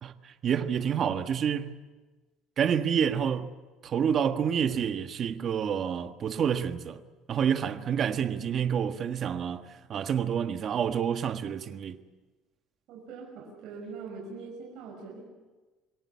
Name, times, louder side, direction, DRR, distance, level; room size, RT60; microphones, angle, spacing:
voice 1, 0.0-1.7 2.6-3.5 3.8-7.0 7.3-12.0, right 8 dB, 40° right, 1.5 m, -28 dB
voice 2, 12.9-15.3, right 4 dB, 65° right, 6.1 m, -42 dB
27.0 x 21.5 x 8.4 m
cardioid pair, 140°, 0 cm